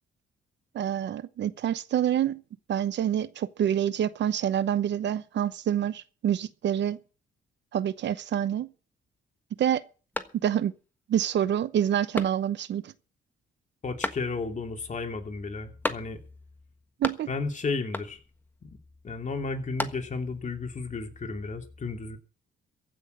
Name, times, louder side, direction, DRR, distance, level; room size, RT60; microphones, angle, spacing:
voice 1, 0.7-2.4 2.7-7.0 7.7-8.7 9.6-9.8 10.4-10.7 11.1-12.9 17.0-17.3, right 10 dB, 65° right, 0.9 m, -27 dB
sound 1, 10.1-10.8 11.2-11.3 12.1-12.8 14.0-14.7 15.8-16.4 16.7-17.5 17.9-18.4 19.4-20.4, left 1 dB, 10° left, 1.4 m, -35 dB
voice 2, 13.8-16.2 17.3-18.2 18.6-18.7 19.0-22.2, left 4 dB, 40° left, 2.9 m, -33 dB
15.0 x 6.4 x 9.3 m
cardioid pair, 90°, 20 cm